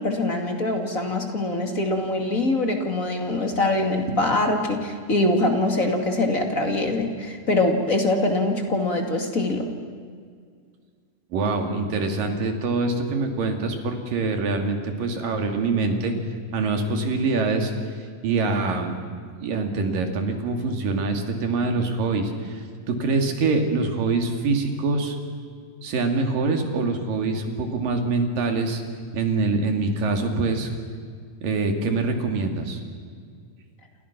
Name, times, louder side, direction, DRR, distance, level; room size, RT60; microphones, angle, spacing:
voice 1, 0.0-9.7, left 2 dB, 25° left, 3 dB, 2.3 m, -23 dB
voice 2, 11.3-16.1 16.5-17.7 18.2-18.9 19.4-25.2 25.8-28.8 29.1-30.7 31.4-32.8, right 3 dB, 90° right, 4 dB, 4.3 m, -24 dB
29.0 x 28.5 x 6.1 m, 2.1 s
omnidirectional pair, 3.8 m